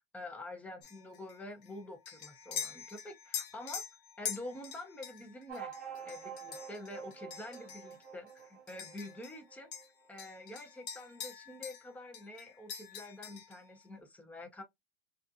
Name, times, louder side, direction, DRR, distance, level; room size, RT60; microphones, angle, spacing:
voice 1, 0.0-3.8 4.2-5.7 6.0-9.7 10.1-14.6, left 1 dB, 5° left, 0.5 m, -47 dB
sound 1, 0.8-9.4 9.7-11.9 12.1-13.6, left 8 dB, 45° left, 0.7 m, -45 dB
sound 2, 5.5-10.4, right 7 dB, 30° right, 0.8 m, -48 dB
2.4 x 2.3 x 2.5 m
hypercardioid pair, 120°, 31 cm